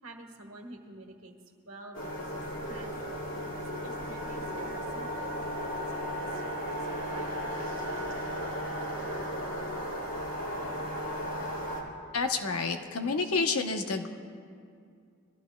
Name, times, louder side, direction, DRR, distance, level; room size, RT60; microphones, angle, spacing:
voice 1, 0.0-1.3 1.6-5.3 5.7-8.3, right 2 dB, 65° right, 3 dB, 1.4 m, -50 dB
sound 1, 1.9-11.8, equal, 60° left, 2.4 m, -35 dB
voice 2, 12.1-14.1, left 4 dB, 80° left, 5 dB, 0.9 m, -29 dB
22.0 x 14.5 x 2.3 m, 2.3 s
head